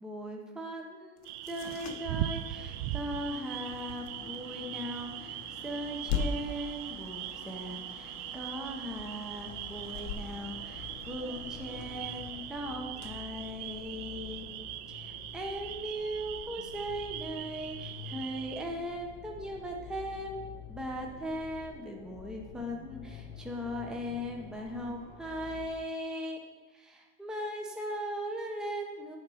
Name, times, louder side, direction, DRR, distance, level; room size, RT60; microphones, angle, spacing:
voice 1, 0.0-5.4 5.6-14.5 14.9-20.4 20.7-26.4 26.7-29.2, equal, ahead, 1 dB, 0.7 m, -38 dB
sound 1, 1.2-14.1, left 5 dB, 45° left, 0.8 m, -42 dB
sound 2, 1.3-18.6, right 13 dB, 60° right, 0.5 m, -41 dB
sound 3, 9.3-25.7, left 6 dB, 70° left, 1.4 m, -48 dB
8.8 x 4.3 x 5.6 m, 1.3 s
cardioid pair, 140°, 40 cm